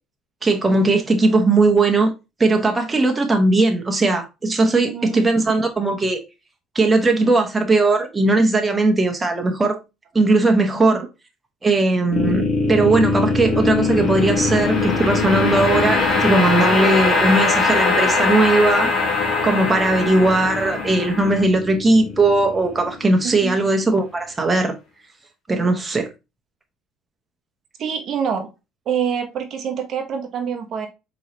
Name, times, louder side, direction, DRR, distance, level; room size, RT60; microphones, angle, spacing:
voice 1, 0.4-2.1 2.4-6.2 6.7-9.8 10.1-11.0 11.6-18.9 19.4-24.7 25.5-26.1, right 2 dB, 20° right, 0.9 m, -18 dB
voice 2, 4.6-5.6 10.9-11.1 23.2-23.6 27.8-28.5 28.9-30.9, right 7 dB, 55° right, 0.7 m, -26 dB
sound 1, 12.1-23.3, left 3 dB, 50° left, 1.4 m, -21 dB
4.6 x 3.1 x 2.7 m
cardioid pair, 105°, 0 cm